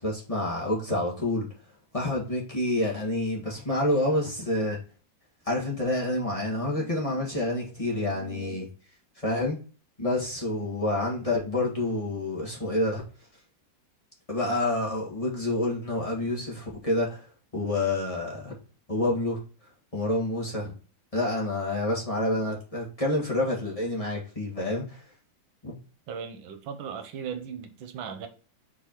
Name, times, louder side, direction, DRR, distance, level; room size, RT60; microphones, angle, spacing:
voice 1, 0.0-1.5 1.9-4.8 5.4-8.7 9.2-9.6 10.0-13.0 14.3-17.3 17.5-18.6 18.9-19.4 19.9-20.7 21.1-25.0 25.6-25.7, left 1 dB, 20° left, 1.5 m, -28 dB
voice 2, 26.1-28.3, right 7 dB, 85° right, 1.6 m, -37 dB
4.7 x 4.7 x 4.4 m
omnidirectional pair, 2.1 m